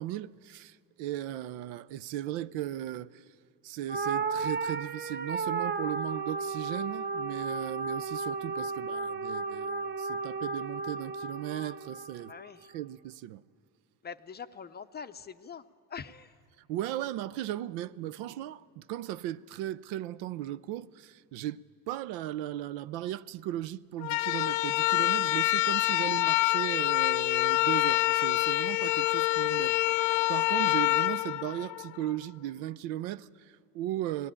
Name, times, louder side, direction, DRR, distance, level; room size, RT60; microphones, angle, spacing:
voice 1, 0.0-3.3 3.6-12.3 12.7-13.4 16.6-34.3, right 13 dB, 80° right, 0.6 m, -37 dB
sound 1, 3.9-12.5, right 4 dB, 25° right, 0.7 m, -34 dB
voice 2, 12.3-12.7 14.0-15.6 15.9-16.3, left 6 dB, 25° left, 0.5 m, -43 dB
sound 2, 24.0-32.2, left 19 dB, 75° left, 0.6 m, -26 dB
19.5 x 15.5 x 10.0 m
cardioid pair, 110°, 44 cm